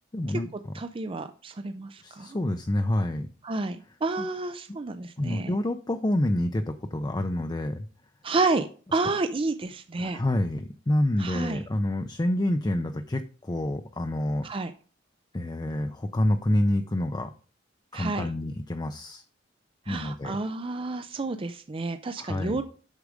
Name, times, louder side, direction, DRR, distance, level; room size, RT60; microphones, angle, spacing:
voice 1, 0.1-0.5 2.0-3.3 4.2-4.3 4.7-4.8 5.2-7.9 10.0-14.5 15.3-17.3 17.9-19.2 19.9-20.4 22.2-22.6, left 1 dB, 20° left, 8 dB, 0.5 m, -28 dB
voice 2, 0.7-2.4 3.4-5.5 8.2-10.2 11.2-11.6 14.4-14.7 17.9-18.3 19.9-22.6, right 3 dB, 30° right, 9 dB, 0.5 m, -30 dB
8.2 x 6.4 x 5.0 m, 0.40 s
head